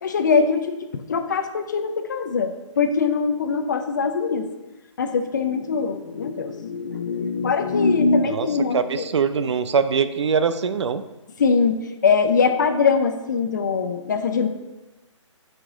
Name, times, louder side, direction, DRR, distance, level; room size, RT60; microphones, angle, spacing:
voice 1, 0.0-4.5 5.0-9.1 11.4-14.5, left 5 dB, 35° left, 8 dB, 0.5 m, -22 dB
voice 2, 8.7-11.0, right 6 dB, 60° right, 12 dB, 0.5 m, -22 dB
6.1 x 5.1 x 4.9 m, 1.1 s
hypercardioid pair, 170°, 16 cm